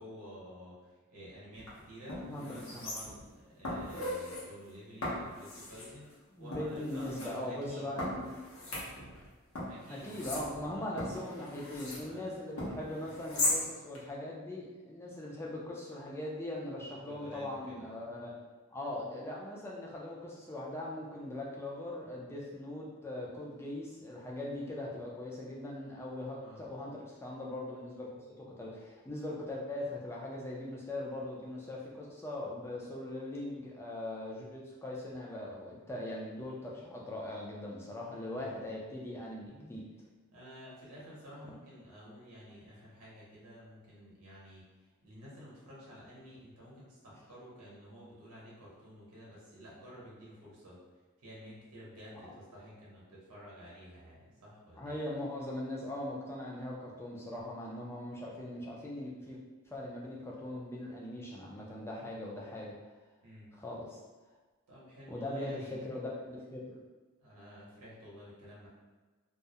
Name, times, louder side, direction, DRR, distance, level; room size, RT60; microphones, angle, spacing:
voice 1, 0.0-7.9 9.7-10.3 10.7-11.5 12.0-12.9 16.8-17.9 26.4-26.6 38.3-38.6 40.3-44.6 45.0-50.8 51.2-55.0 63.2-63.5 64.7-65.8 67.2-68.7, equal, 85° right, -6 dB, 0.7 m, -51 dB
sound 1, 1.5-1.7 2.1-3.3 3.6-4.4 5.0-5.9 6.5-7.3 8.0-9.3 9.6-12.0 12.6-13.6 13.9-14.0, left 1 dB, 65° left, 0.7 m, -37 dB
voice 2, 2.2-2.9 6.4-8.4 8.9-9.0 9.9-18.3 18.7-28.1 28.4-39.8 54.8-59.4 59.7-62.7 63.5-64.0 65.1-66.8, left 1 dB, 10° left, -4 dB, 0.3 m, -40 dB
2.3 x 2.0 x 2.7 m, 1.3 s
head